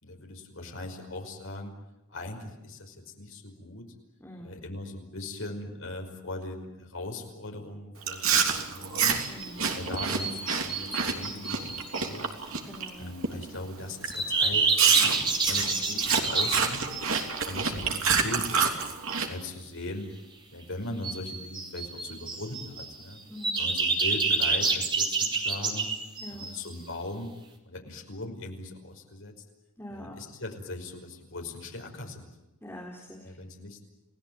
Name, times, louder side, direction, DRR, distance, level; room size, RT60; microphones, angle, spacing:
voice 1, 0.0-1.7 2.1-3.9 4.4-9.2 9.7-12.3 13.0-16.9 17.4-18.7 19.3-20.1 20.5-23.2 23.5-25.9 26.3-27.3 27.6-29.3 29.9-32.3 33.2-33.8, left 2 dB, 60° left, 2 dB, 5.5 m, -39 dB
voice 2, 4.2-4.6 9.3-9.8 12.6-13.1 15.5-16.0 23.3-23.7 26.2-26.5 29.8-30.1 32.6-33.3, equal, 10° left, -1 dB, 3.5 m, -44 dB
Chewing mastication, 8.0-12.9 13.2-13.6 14.0-14.2 14.8-19.3, right 6 dB, 65° right, 3.1 m, -28 dB
sound 1, 9.0-9.5 10.0-12.1 14.1-17.3 21.0-22.9 23.4-26.7, right 4 dB, 20° right, 3.0 m, -28 dB
29.0 x 18.0 x 9.3 m, 1.0 s
head